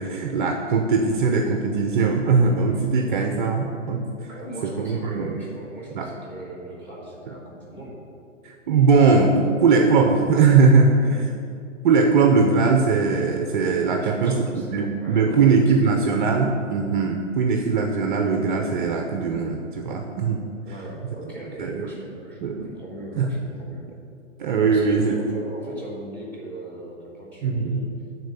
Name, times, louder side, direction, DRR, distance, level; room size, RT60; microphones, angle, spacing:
voice 1, 0.0-4.0 4.6-5.3 5.9-6.1 8.7-11.3 11.8-14.3 14.7-20.4 21.6-21.9 22.4-22.6 23.1-23.3 24.4-25.2 27.4-27.8, right 4 dB, 40° right, 3 dB, 0.9 m, -20 dB
voice 2, 4.3-8.0 13.9-16.0 20.6-23.9 24.5-27.9, right 1 dB, 5° left, -4 dB, 3.2 m, -38 dB
13.0 x 4.6 x 8.4 m, 2.5 s
hypercardioid pair, 135°, 38 cm